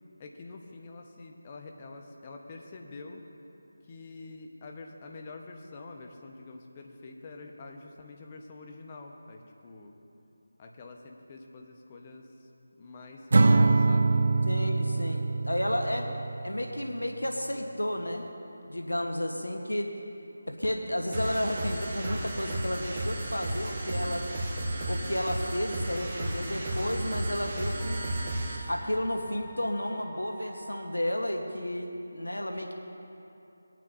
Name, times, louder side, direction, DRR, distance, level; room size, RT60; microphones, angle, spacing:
voice 1, 0.2-3.2 3.9-9.9 10.6-12.5 12.8-14.5 16.0-16.1, left 3 dB, 25° left, 2 dB, 0.9 m, -46 dB
Acoustic guitar / Strum, 13.3-16.7, right 3 dB, 55° right, 0.3 m, -24 dB
voice 2, 14.4-16.1 16.4-18.2 18.7-19.9 20.5-24.3 24.9-28.0 28.7-32.7, left 1 dB, 90° left, 3 dB, 0.9 m, -32 dB
sound 1, 21.1-28.7, right 1 dB, 25° right, 1.3 m, -33 dB
Wind instrument woodwind instrument, 27.8-31.3, right 1 dB, ahead, 0.6 m, -48 dB
21.0 x 9.1 x 2.5 m, 2.9 s
figure-of-eight pair, 160°, 0 cm